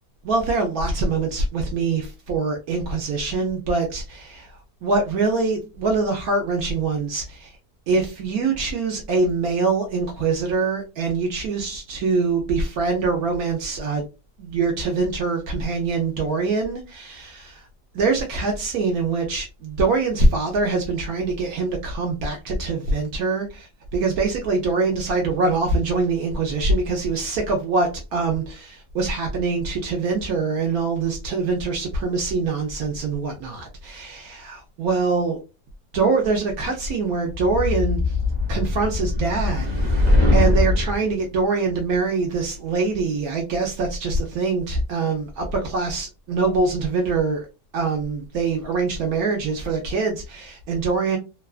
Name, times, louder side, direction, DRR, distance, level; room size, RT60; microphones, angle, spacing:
voice 1, 0.2-7.5 7.9-14.1 14.4-17.6 17.9-35.4 35.9-38.1 38.5-39.7 40.3-47.5 47.7-51.2, right 3 dB, 70° right, 1.0 m, -24 dB
sound 1, 37.3-41.0, left 2 dB, 50° right, 0.5 m, -21 dB
2.9 x 2.2 x 2.3 m
omnidirectional pair, 1.8 m